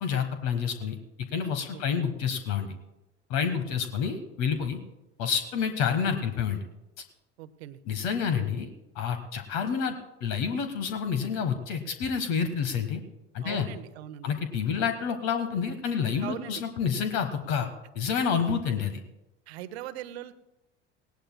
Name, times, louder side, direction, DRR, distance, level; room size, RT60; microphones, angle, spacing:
voice 1, 0.0-0.9 1.3-2.7 3.3-4.8 5.2-6.6 7.9-8.7 8.9-9.9 10.2-13.0 13.3-13.7 14.2-17.7 17.9-19.0, left 7 dB, 50° left, 7 dB, 1.3 m, -28 dB
voice 2, 7.4-7.8 13.4-14.3 16.2-16.6 19.5-20.3, right 12 dB, 65° right, 13 dB, 0.9 m, -40 dB
18.5 x 17.5 x 2.2 m, 0.95 s
figure-of-eight pair, 70°, 35 cm